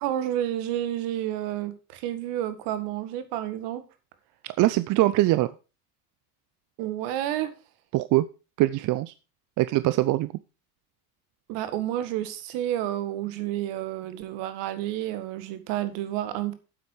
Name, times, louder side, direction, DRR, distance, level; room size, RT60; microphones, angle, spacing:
voice 1, 0.0-3.8 6.8-7.5 11.5-16.5, right 12 dB, 60° right, 11 dB, 1.8 m, -30 dB
voice 2, 4.4-5.5 7.9-8.2 8.6-9.1 9.6-10.3, right 17 dB, 40° right, 15 dB, 0.6 m, -22 dB
8.9 x 8.0 x 4.8 m, 0.32 s
hypercardioid pair, 75°, 47 cm